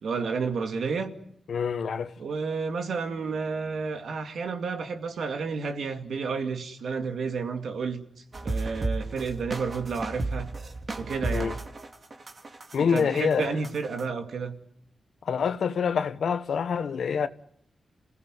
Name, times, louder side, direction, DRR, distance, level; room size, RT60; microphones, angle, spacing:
voice 1, 0.0-1.1 2.2-8.0 8.4-10.5 11.0-11.5 12.9-14.6, right 5 dB, 80° right, 2.4 m, -31 dB
voice 2, 1.5-2.1 11.3-11.6 12.7-13.6 15.2-17.3, left 6 dB, 80° left, 1.2 m, -26 dB
sound 1, 8.3-14.0, right 2 dB, 45° right, 2.6 m, -34 dB
28.0 x 16.5 x 9.3 m
cardioid pair, 85°, 0 cm